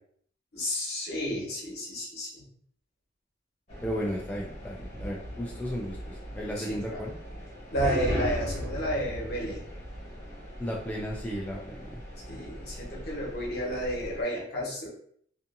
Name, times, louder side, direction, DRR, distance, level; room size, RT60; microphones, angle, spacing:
voice 1, 0.5-2.5 6.6-7.0 7.7-9.6 12.3-14.9, equal, 60° left, -4 dB, 1.0 m, -32 dB
sound 1, 3.7-14.2, equal, 40° left, 1.0 m, -37 dB
voice 2, 3.8-7.2 10.6-12.0, equal, 10° left, -3 dB, 0.3 m, -34 dB
2.6 x 2.4 x 2.5 m, 0.63 s
head